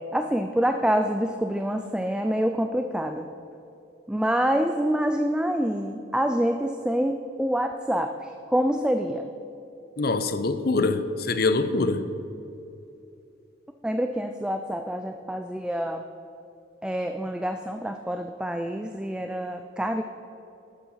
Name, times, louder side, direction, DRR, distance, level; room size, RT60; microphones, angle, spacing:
voice 1, 0.0-3.3 4.1-9.3 13.8-16.0 16.8-20.0, equal, 5° right, 0.3 m, -26 dB
voice 2, 10.0-12.1, left 3 dB, 55° left, 0.6 m, -24 dB
12.0 x 7.1 x 5.6 m
head